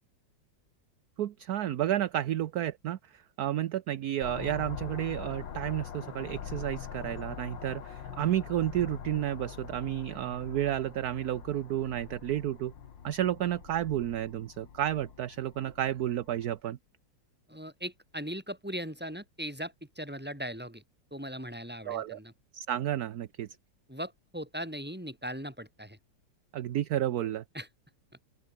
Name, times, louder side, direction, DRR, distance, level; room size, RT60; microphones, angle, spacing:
voice 1, 1.2-12.7 13.0-16.8 21.8-22.2 22.5-23.5 26.5-27.4, right 12 dB, 65° right, 1.2 m, -31 dB
sound 1, 4.2-16.6, left 8 dB, 85° left, 2.3 m, -44 dB
voice 2, 17.5-20.8 21.1-22.3 23.9-26.0 27.5-27.7, equal, 5° right, 6.0 m, -39 dB
open air
omnidirectional pair, 2.0 m